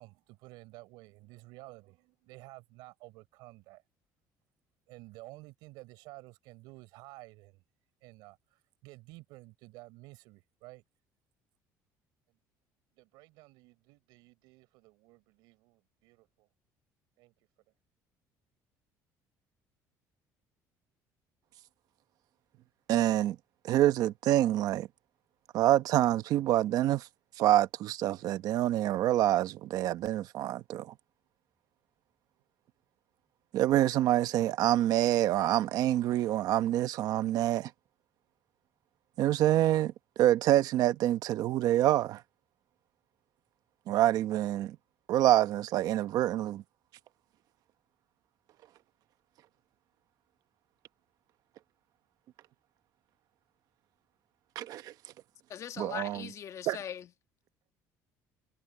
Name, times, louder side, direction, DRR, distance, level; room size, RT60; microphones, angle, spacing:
voice 1, 0.0-3.8 4.9-7.6 8.0-10.8 12.3-12.4 13.0-16.5 17.2-17.3, right 22 dB, 85° right, 4.9 m, -52 dB
voice 2, 22.9-23.4 23.6-24.9 25.5-27.1 27.4-30.9 33.5-37.7 39.2-42.2 43.9-44.8 45.1-46.6 54.5-54.9 55.8-56.2 56.7-56.8, right 13 dB, 65° right, 1.1 m, -26 dB
voice 3, 55.5-57.1, left 9 dB, 45° left, 1.3 m, -40 dB
cardioid pair, 120°, 7 cm